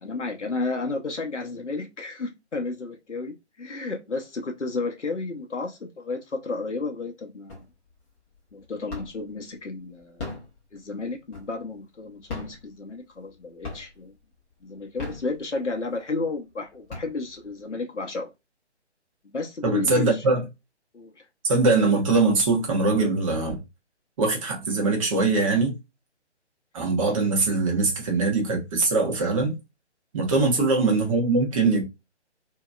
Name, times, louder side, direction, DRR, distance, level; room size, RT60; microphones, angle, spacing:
voice 1, 0.0-7.6 8.5-10.3 10.7-14.1 14.6-18.3 19.2-20.2 20.9-21.3 30.3-30.7, left 3 dB, 90° left, 0.8 m, -32 dB
sound 1, 7.5-8.0 8.3-9.4 10.0-11.8 12.2-13.3 13.6-14.2 14.8-15.8 16.3-16.4 16.7-17.6, left 3 dB, 10° left, 0.7 m, -38 dB
voice 2, 19.6-20.4 21.5-23.6 24.2-25.7 26.7-29.5 30.1-31.8, right 3 dB, 30° right, 1.1 m, -22 dB
2.9 x 2.8 x 2.3 m
figure-of-eight pair, 140°, 35 cm